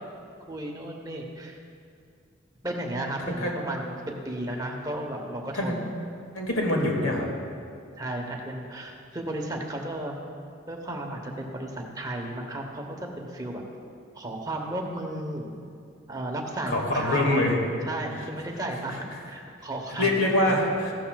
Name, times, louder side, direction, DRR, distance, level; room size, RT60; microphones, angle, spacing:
voice 1, 0.5-1.6 2.6-5.9 8.0-10.2 10.7-13.6 14.1-15.5 16.1-17.5 17.9-20.6, right 1 dB, 20° right, 1 dB, 0.9 m, -34 dB
voice 2, 6.3-7.3 16.7-17.6 18.9-19.0 20.0-20.9, left 1 dB, 90° left, -1 dB, 2.0 m, -24 dB
15.0 x 12.0 x 2.3 m, 2.3 s
head